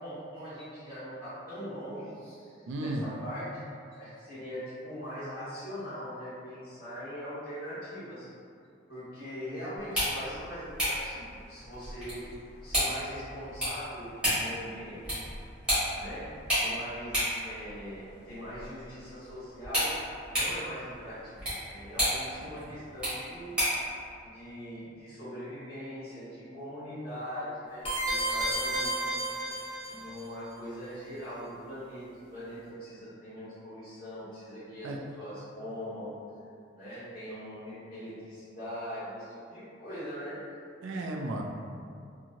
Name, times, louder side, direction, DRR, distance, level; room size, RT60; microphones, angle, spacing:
voice 1, 0.0-3.6 4.0-8.3 8.9-12.2 12.6-15.2 16.0-19.9 20.3-23.5 24.2-29.2 29.9-36.1 36.7-40.4, equal, 45° left, -13 dB, 1.4 m, -41 dB
voice 2, 2.7-3.0 22.5-22.7 34.8-35.0 40.8-41.4, right 1 dB, 70° right, 1 dB, 0.3 m, -34 dB
sound 1, 9.8-23.9, equal, 5° right, 1.2 m, -33 dB
sound 2, 27.8-30.2, right 1 dB, 30° left, 0.7 m, -31 dB
2.8 x 2.7 x 2.5 m, 2.4 s
head